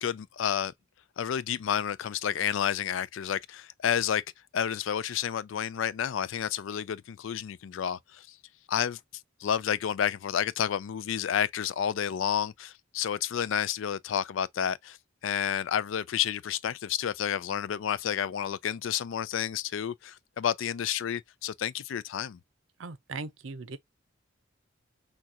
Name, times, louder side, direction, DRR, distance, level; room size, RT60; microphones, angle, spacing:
voice 1, 0.0-0.7 1.2-4.2 4.5-8.3 8.7-9.0 9.4-15.0 15.2-22.4, left 9 dB, 80° left, 0.4 m, -30 dB
voice 2, 22.8-23.8, right 3 dB, 80° right, 0.7 m, -39 dB
6.3 x 2.4 x 2.8 m
head